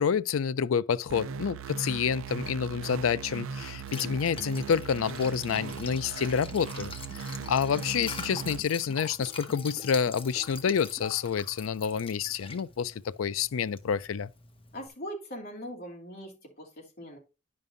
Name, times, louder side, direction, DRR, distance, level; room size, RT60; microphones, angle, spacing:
voice 1, 0.0-14.3, left 7 dB, 85° left, 0.4 m, -28 dB
sound 1, 1.1-8.6, right 6 dB, 85° right, 0.4 m, -39 dB
Liquid, 3.6-14.9, left 4 dB, 30° left, 1.0 m, -44 dB
voice 2, 14.7-17.2, equal, 50° left, 3.0 m, -41 dB
10.5 x 5.3 x 2.6 m
head